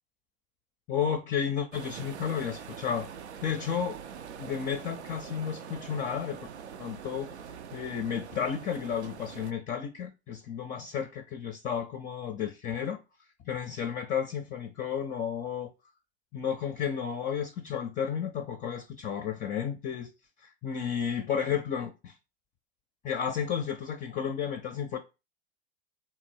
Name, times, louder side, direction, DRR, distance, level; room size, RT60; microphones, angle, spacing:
voice 1, 0.9-3.1 3.4-4.0 4.4-6.5 6.8-7.3 7.7-13.0 13.5-15.7 16.3-20.1 20.4-22.1 23.0-25.0, left 8 dB, 25° left, 0.4 m, -32 dB
sound 1, 1.7-9.5, right 7 dB, 90° right, 0.5 m, -44 dB
3.6 x 2.6 x 4.4 m
hypercardioid pair, 90°, 32 cm